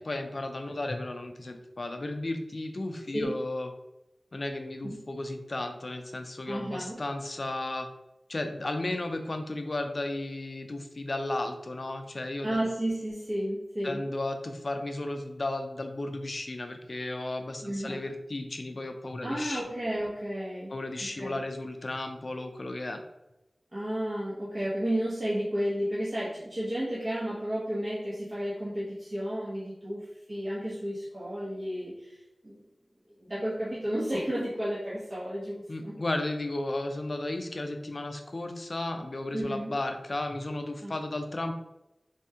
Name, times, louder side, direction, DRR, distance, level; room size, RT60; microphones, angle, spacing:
voice 1, 0.0-3.7 4.3-7.9 8.3-12.7 13.8-19.6 20.7-23.0 35.7-41.5, left 2 dB, 55° left, 6 dB, 0.4 m, -34 dB
voice 2, 6.5-7.0 12.4-14.0 17.6-18.0 19.2-20.7 21.2-21.4 23.7-32.7 33.2-36.0 39.3-39.8 40.8-40.9, equal, 45° right, -8 dB, 0.8 m, -32 dB
3.4 x 2.2 x 2.7 m, 0.92 s
wide cardioid pair, 50°, 0 cm